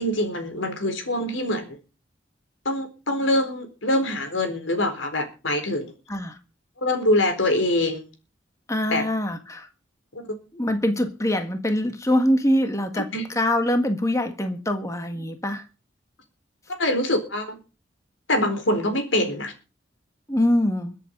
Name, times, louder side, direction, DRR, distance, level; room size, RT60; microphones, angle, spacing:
voice 1, 0.0-1.8 2.6-5.9 6.8-8.0 8.9-9.0 10.1-10.2 13.0-13.2 16.8-17.6 18.3-19.5, left 1 dB, 90° left, 4.2 m, -24 dB
voice 2, 8.7-9.7 10.5-15.6 20.3-20.9, left 1 dB, 15° left, 1.6 m, -24 dB
22.5 x 8.2 x 5.3 m
head